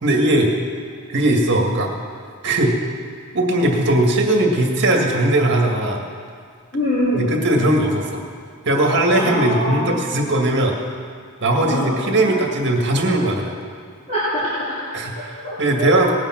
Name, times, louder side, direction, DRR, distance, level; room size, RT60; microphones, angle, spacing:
voice 1, 0.0-0.5 1.1-1.9 2.4-2.7 3.3-6.0 7.1-8.2 8.7-10.7 11.4-13.5 14.9-16.1, right 1 dB, 55° right, 1 dB, 2.0 m, -19 dB
voice 2, 6.7-7.3 9.1-10.1 11.6-11.9 14.1-14.8 15.1-16.1, equal, 30° left, -11 dB, 3.2 m, -24 dB
18.5 x 8.9 x 6.0 m, 2.1 s
head